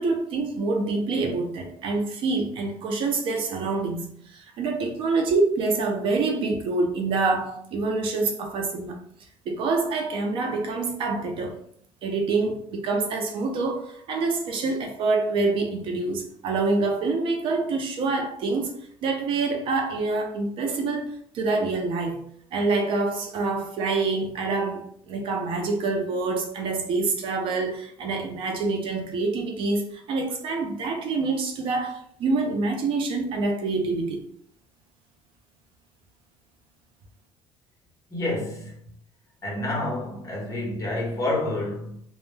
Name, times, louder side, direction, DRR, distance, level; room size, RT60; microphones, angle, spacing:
voice 1, 0.0-9.0 9.5-11.6 12.0-18.7 19.0-22.2 22.5-34.2, right 3 dB, 55° right, 0.5 m, -26 dB
voice 2, 38.1-38.8 39.4-42.0, left 1 dB, 30° left, 0.9 m, -29 dB
2.1 x 2.1 x 3.1 m
cardioid pair, 160°, 11 cm